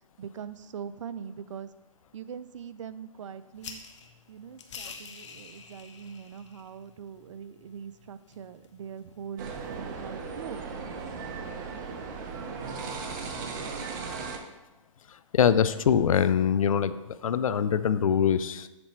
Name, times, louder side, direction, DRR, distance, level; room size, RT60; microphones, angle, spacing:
voice 1, 0.2-1.7 2.1-3.8 4.3-10.7, right 7 dB, 65° right, 14 dB, 0.5 m, -42 dB
sound 1, 3.6-9.7, left 5 dB, 60° left, 1.0 m, -48 dB
sound 2, 9.4-14.4, right 4 dB, 35° right, 0.9 m, -37 dB
voice 2, 15.3-17.0 17.2-18.7, left 8 dB, 75° left, 14 dB, 0.5 m, -23 dB
7.8 x 4.2 x 4.5 m, 1.1 s
hypercardioid pair, 145°, 17 cm